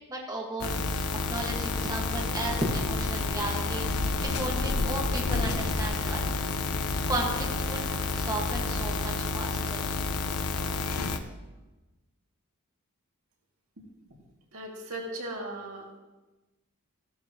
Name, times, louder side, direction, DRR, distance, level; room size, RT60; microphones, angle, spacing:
voice 1, 0.1-6.2 7.1-7.8 8.2-10.0, right 1 dB, 15° right, -2 dB, 1.6 m, -34 dB
sound 1, 0.6-11.2, left 3 dB, 80° left, 0.8 m, -29 dB
voice 2, 14.5-16.0, right 1 dB, 70° right, -1 dB, 2.3 m, -37 dB
14.5 x 11.5 x 3.0 m, 1.1 s
head